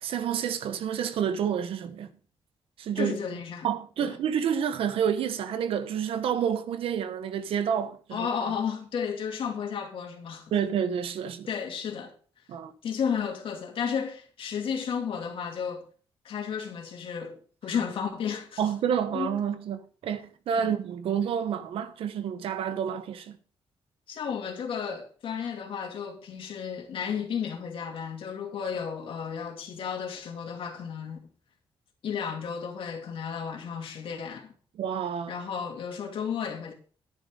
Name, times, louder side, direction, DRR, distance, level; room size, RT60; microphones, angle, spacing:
voice 1, 0.0-2.1 2.8-3.2 3.6-8.3 10.5-11.5 12.5-12.7 18.6-23.4 34.8-35.3, right 8 dB, 80° right, 1.1 m, -29 dB
voice 2, 3.0-3.7 4.0-4.1 8.1-10.5 11.5-12.1 12.8-15.8 16.2-18.6 19.1-19.4 20.5-20.7 24.1-31.2 32.0-34.5 35.3-36.7, left 7 dB, 70° left, 2.6 m, -33 dB
10.5 x 9.4 x 3.8 m
cardioid pair, 120°, 9 cm